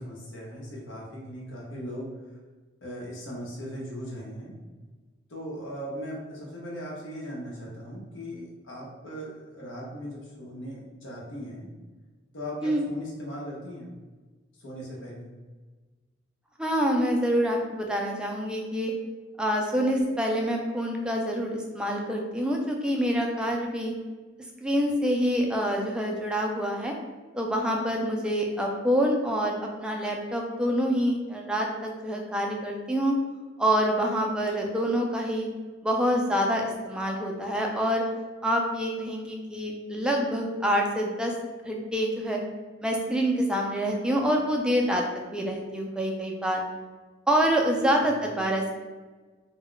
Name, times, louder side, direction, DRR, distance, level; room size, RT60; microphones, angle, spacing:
voice 1, 0.0-2.1 2.8-4.5 5.3-11.7 12.3-13.9 14.6-15.3 48.0-48.1, equal, 80° left, -4 dB, 0.8 m, -38 dB
voice 2, 16.6-18.9 19.4-23.9 24.6-26.9 27.3-33.2 33.6-35.5 35.8-38.0 38.4-41.3 41.6-42.4 42.8-46.6 47.3-48.7, equal, 5° right, 0 dB, 0.3 m, -26 dB
2.2 x 2.1 x 3.8 m, 1.3 s
head